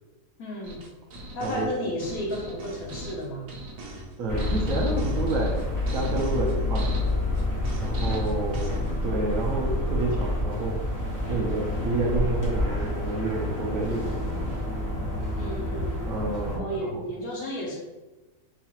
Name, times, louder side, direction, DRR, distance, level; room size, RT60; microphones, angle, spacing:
voice 1, 0.4-0.8 1.3-3.5 8.3-8.8 11.2-11.6 15.4-16.0 16.6-17.8, equal, 65° left, -1 dB, 1.2 m, -33 dB
sound 1, 0.6-8.9, right 1 dB, 80° right, 1.3 m, -38 dB
voice 2, 4.2-6.9 7.8-10.8 11.3-14.5 16.1-17.0, right 2 dB, 65° right, -1 dB, 0.9 m, -29 dB
sound 2, 4.3-16.6, left 1 dB, 15° left, 0.8 m, -28 dB
4.6 x 2.4 x 2.8 m, 1.1 s
omnidirectional pair, 1.7 m